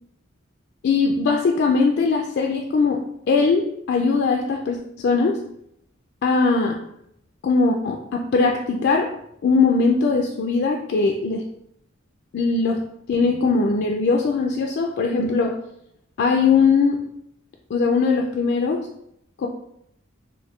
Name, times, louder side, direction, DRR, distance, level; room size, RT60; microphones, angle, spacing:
voice 1, 0.8-3.0 3.3-5.4 6.2-6.8 7.4-9.1 9.4-11.4 12.3-12.8 13.1-15.5 16.2-17.0 17.7-18.9 19.4-19.5, left 4 dB, 60° left, 2 dB, 0.3 m, -20 dB
3.9 x 2.6 x 3.0 m, 0.78 s
head